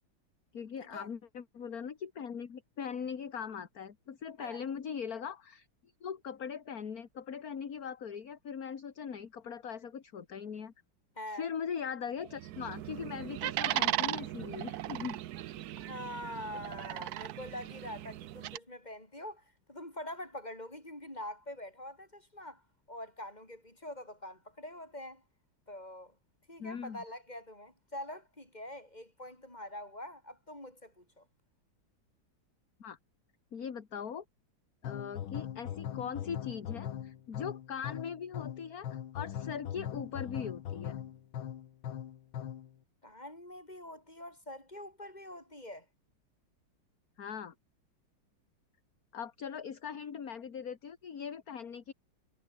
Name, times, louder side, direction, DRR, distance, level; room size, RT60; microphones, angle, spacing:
voice 1, 0.5-10.7 11.3-15.2 26.6-27.0 32.8-33.0 33.5-34.2 34.8-41.0 47.2-47.5 49.1-51.9, left 7 dB, 45° left, 2.0 m, -40 dB
voice 2, 11.2-11.5 15.8-22.6 22.9-25.2 25.7-26.2 26.5-31.2 43.0-45.9, left 1 dB, 20° left, 7.5 m, -45 dB
sound 1, 12.2-18.6, right 13 dB, 70° right, 0.9 m, -37 dB
sound 2, 34.8-42.7, left 10 dB, 70° left, 2.1 m, -40 dB
omnidirectional pair, 2.3 m